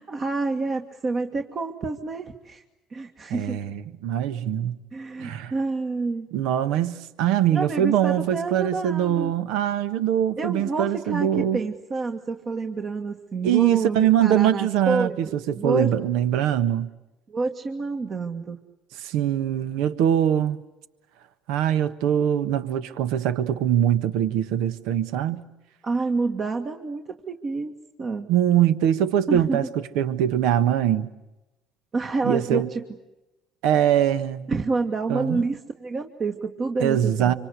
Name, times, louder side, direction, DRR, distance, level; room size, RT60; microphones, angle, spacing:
voice 1, 0.0-2.6 2.9-3.6 4.9-6.3 7.5-9.3 10.4-15.9 17.3-18.6 25.8-27.7 28.0-28.3 29.3-29.7 31.9-32.8 34.5-37.3, right 3 dB, 45° right, 1.9 m, -28 dB
voice 2, 3.3-4.8 5.2-5.5 6.3-11.6 13.4-15.1 15.5-16.9 18.9-20.6 21.5-25.4 28.3-29.6 29.9-31.1 32.2-32.7 33.6-34.5 35.1-35.4 36.8-37.3, right 10 dB, 80° right, 1.3 m, -22 dB
26.0 x 25.0 x 8.2 m
supercardioid pair, 80°, 0 cm